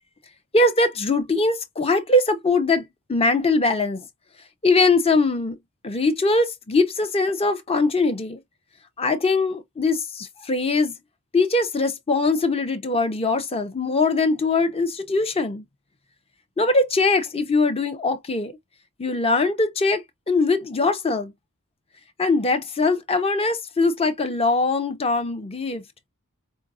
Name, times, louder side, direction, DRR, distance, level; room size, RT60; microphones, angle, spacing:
voice 1, 0.5-4.1 4.6-5.6 5.8-8.4 9.0-10.9 11.3-15.6 16.6-18.6 19.0-21.3 22.2-25.8, left 3 dB, 25° left, 0.6 m, -21 dB
4.7 x 2.4 x 2.4 m
head